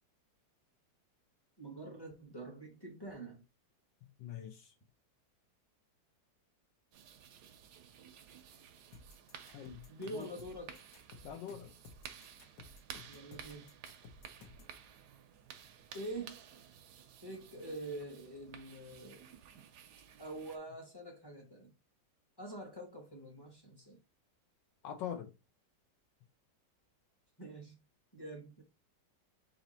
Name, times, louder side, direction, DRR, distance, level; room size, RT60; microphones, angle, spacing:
voice 1, 1.6-3.4 9.9-10.8 13.1-13.7 15.9-16.4 17.2-19.2 20.2-21.7 22.4-24.0 27.4-27.8 28.1-28.6, right 1 dB, 15° left, 0.9 m, -45 dB
voice 2, 4.2-4.7 9.5-9.8 10.1-10.3 11.2-11.7 24.8-25.3, left 8 dB, 80° left, 1.4 m, -43 dB
sound 1, 6.9-20.6, right 8 dB, 70° right, 1.1 m, -54 dB
sound 2, 8.9-14.8, left 3 dB, 55° left, 1.2 m, -55 dB
4.2 x 2.7 x 4.1 m
omnidirectional pair, 2.0 m